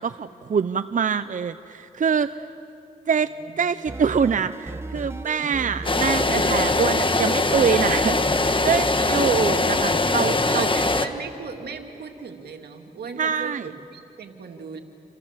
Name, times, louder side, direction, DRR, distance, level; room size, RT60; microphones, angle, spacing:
voice 1, 0.0-2.5 3.1-3.3 3.6-10.7 13.2-13.7, right 6 dB, 55° right, 12 dB, 0.7 m, -25 dB
voice 2, 3.2-3.6 9.0-9.3 10.4-14.8, right 5 dB, 85° right, 4 dB, 2.2 m, -37 dB
sound 1, 3.9-11.0, right 2 dB, 15° right, 0.9 m, -35 dB
sound 2, 5.8-11.1, left 2 dB, 30° left, 1.5 m, -22 dB
28.5 x 27.5 x 7.4 m, 2.8 s
cardioid pair, 60°, 16 cm